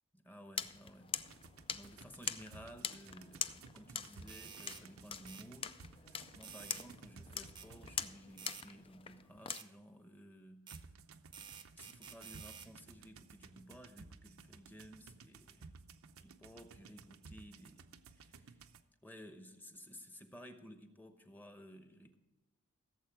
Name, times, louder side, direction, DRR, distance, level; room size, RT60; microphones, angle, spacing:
voice 1, 0.1-1.2 1.7-5.7 6.1-10.7 11.7-15.7 16.2-18.6 19.0-22.2, equal, 10° left, 7 dB, 0.9 m, -55 dB
sound 1, 0.5-9.6, left 7 dB, 25° left, 0.4 m, -44 dB
sound 2, 1.1-8.4 10.7-18.8, right 4 dB, 75° right, 0.7 m, -57 dB
sound 3, 4.3-4.8 5.3-5.5 6.4-6.9 7.6-7.7 8.4-8.7 9.5-9.7 10.7-10.8 11.3-12.7, right 7 dB, 20° right, 0.7 m, -51 dB
16.0 x 7.5 x 4.7 m, 1.1 s
head